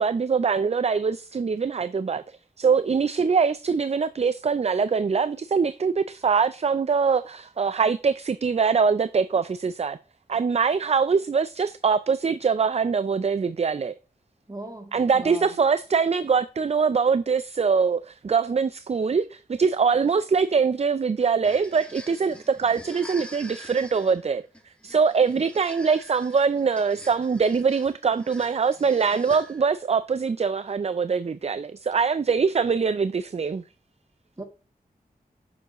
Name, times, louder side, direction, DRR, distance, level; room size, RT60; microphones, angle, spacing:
voice 1, 0.0-10.0 10.3-13.9 14.9-24.4 24.8-33.6, right 5 dB, 45° right, 0.4 m, -23 dB
voice 2, 14.5-15.6 25.3-25.4 34.4-34.5, right 1 dB, 25° right, 2.7 m, -38 dB
sound 1, 21.2-29.8, equal, 5° left, 2.0 m, -46 dB
8.9 x 7.1 x 3.0 m
cardioid pair, 45°, 16 cm